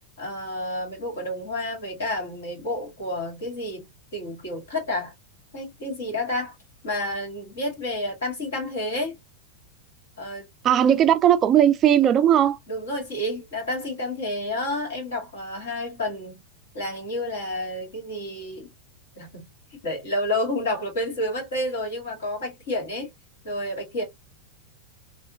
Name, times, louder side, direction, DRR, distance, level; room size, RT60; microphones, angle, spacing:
voice 1, 0.2-5.1 5.5-6.6 6.8-9.2 10.2-10.5 12.7-16.4 16.7-18.7 19.2-19.5 19.8-23.1 23.4-24.0, left 1 dB, 65° left, 2.1 m, -30 dB
voice 2, 10.6-12.6, right 10 dB, 30° right, 0.4 m, -18 dB
3.4 x 2.5 x 2.7 m
figure-of-eight pair, 90°, 0 cm